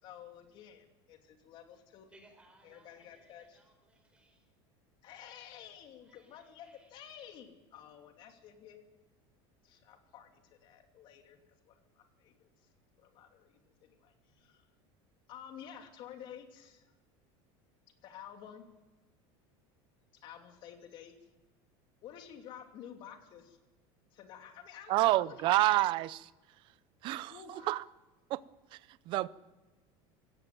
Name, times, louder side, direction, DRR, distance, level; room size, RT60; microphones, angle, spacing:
voice 1, 0.0-2.1 2.6-3.6 5.0-8.8 9.6-11.4 11.7-12.5 13.0-14.7 15.3-16.9 18.0-18.7 20.1-21.1 22.0-23.6 24.1-25.7 27.3-27.8, left 9 dB, 40° left, 3.0 m, -51 dB
voice 2, 2.1-4.5 6.0-6.9, right 2 dB, 10° right, 4.3 m, -64 dB
voice 3, 24.9-26.3 27.0-27.8 28.3-28.4 28.7-28.8 29.1-29.3, right 17 dB, 40° right, 0.6 m, -28 dB
17.5 x 17.0 x 9.5 m
cardioid pair, 170°, 13 cm